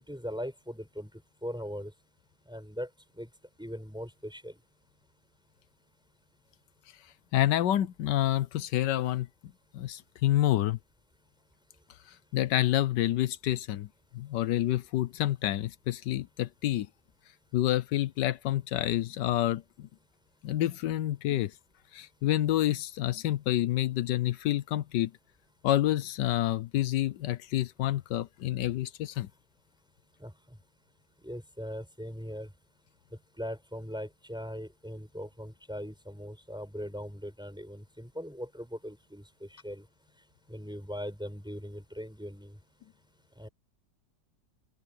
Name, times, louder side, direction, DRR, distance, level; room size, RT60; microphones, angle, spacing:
voice 1, 0.1-1.1 1.4-1.9 2.5-2.9 3.2-3.3 3.6-4.6 30.2-30.3 31.2-32.5 33.4-39.8 40.5-42.6 43.4-43.5, equal, ahead, 5.2 m, -40 dB
voice 2, 7.3-9.3 9.7-10.8 12.1-13.9 14.1-16.9 17.5-19.9 20.4-21.5 21.9-25.1 25.6-29.3, left 13 dB, 85° left, 1.4 m, -28 dB
open air
omnidirectional pair, 1.8 m